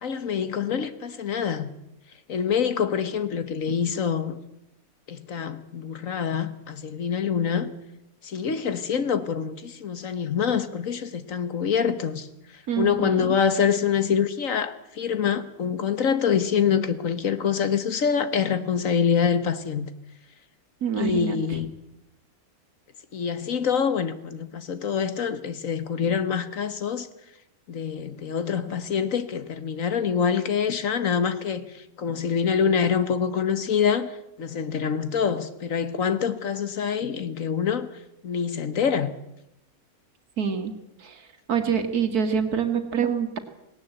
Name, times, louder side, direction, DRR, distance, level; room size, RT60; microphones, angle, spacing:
voice 1, 0.0-1.7 2.3-4.4 5.1-7.7 8.2-12.3 12.8-19.9 21.0-21.7 23.1-27.1 27.7-34.1 34.4-37.9 38.2-39.1, left 7 dB, 65° left, 1.6 m, -25 dB
voice 2, 12.7-13.3 20.8-21.4 40.4-40.8 41.0-41.2 41.5-43.4, right 7 dB, 85° right, 2.3 m, -26 dB
18.5 x 18.0 x 8.0 m
omnidirectional pair, 1.6 m